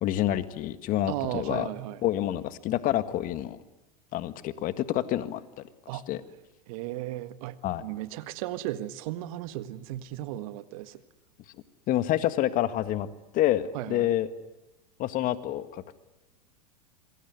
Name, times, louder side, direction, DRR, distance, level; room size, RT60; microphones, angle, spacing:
voice 1, 0.0-1.7 2.0-3.6 4.1-5.4 6.1-6.2 7.6-7.8 11.9-13.1 13.3-14.3 15.0-15.9, left 13 dB, 40° left, 13 dB, 1.8 m, -27 dB
voice 2, 1.1-2.0 5.9-6.1 6.7-11.0 13.7-14.1, right 14 dB, 60° right, 13 dB, 1.7 m, -35 dB
27.0 x 22.5 x 9.5 m, 0.98 s
hypercardioid pair, 100°, 21 cm